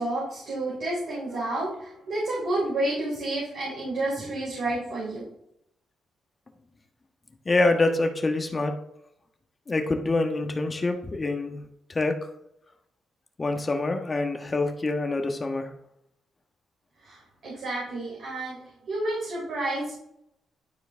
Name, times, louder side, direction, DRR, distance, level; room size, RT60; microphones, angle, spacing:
voice 1, 0.0-5.2 17.0-18.6 18.9-19.9, right 2 dB, 65° right, -6 dB, 3.5 m, -30 dB
voice 2, 7.4-8.7 9.7-11.6 11.9-12.1 13.4-15.7, left 2 dB, 35° left, 5 dB, 1.3 m, -25 dB
12.0 x 4.6 x 3.5 m, 0.77 s
supercardioid pair, 55°, 0 cm